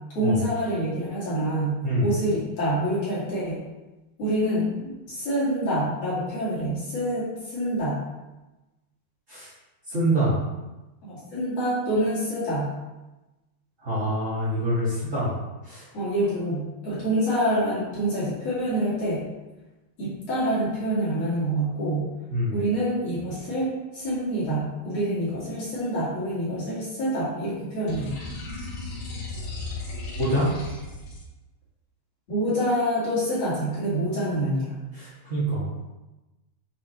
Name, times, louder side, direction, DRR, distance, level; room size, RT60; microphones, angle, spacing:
voice 1, 0.1-3.6 4.2-8.0 11.0-12.7 15.9-19.2 20.0-22.1 22.5-28.1 32.3-34.7, right 1 dB, 45° left, -10 dB, 2.8 m, -26 dB
voice 2, 9.9-10.4 13.8-15.3 15.6-15.9 22.3-22.6 30.2-30.5 34.9-35.9, right 1 dB, 35° right, -9 dB, 1.2 m, -25 dB
sound 1, 27.9-31.2, left 2 dB, 75° left, 3.3 m, -35 dB
7.2 x 4.7 x 3.2 m, 1.1 s
omnidirectional pair, 4.7 m